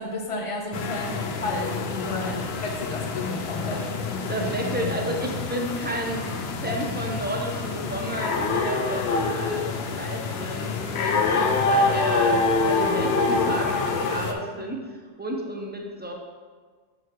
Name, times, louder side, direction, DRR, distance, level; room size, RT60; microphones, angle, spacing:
voice 1, 0.0-3.9, left 2 dB, 35° left, 1 dB, 0.8 m, -32 dB
sound 1, 0.7-14.3, left 3 dB, 90° left, 0.9 m, -26 dB
voice 2, 4.3-16.1, right 1 dB, 10° right, 0 dB, 0.6 m, -31 dB
7.0 x 5.6 x 3.0 m, 1.5 s
omnidirectional pair, 1.0 m